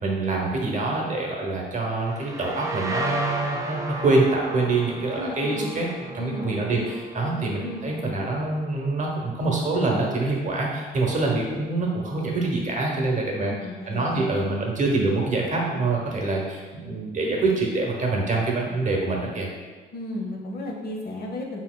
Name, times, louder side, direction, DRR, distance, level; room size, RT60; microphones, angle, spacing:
voice 1, 0.0-13.5 13.9-19.5, right 3 dB, 40° right, -1 dB, 0.9 m, -25 dB
sound 1, 2.0-9.6, right 1 dB, 15° right, 0.5 m, -35 dB
voice 2, 5.2-5.7 6.2-6.9 7.6-7.9 13.3-14.3 19.9-21.6, left 1 dB, 50° left, 0 dB, 0.7 m, -34 dB
4.2 x 3.9 x 2.2 m, 1.4 s
cardioid pair, 90°, 20 cm